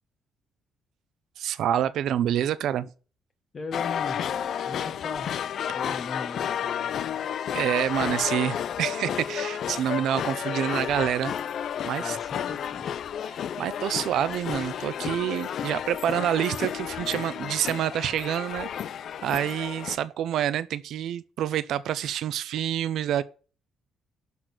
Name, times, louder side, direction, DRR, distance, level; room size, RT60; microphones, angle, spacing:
voice 1, 1.4-2.9 7.5-11.3 11.8-12.2 13.2-18.7 19.2-23.2, right 10 dB, 75° right, 0.8 m, -27 dB
voice 2, 3.5-4.3 4.7-5.3 5.7-7.0 12.0-12.9, left 4 dB, 35° left, 1.4 m, -38 dB
sound 1, 3.7-20.0, left 9 dB, 60° left, 0.5 m, -32 dB
12.5 x 4.3 x 8.2 m
cardioid pair, 115°, 0 cm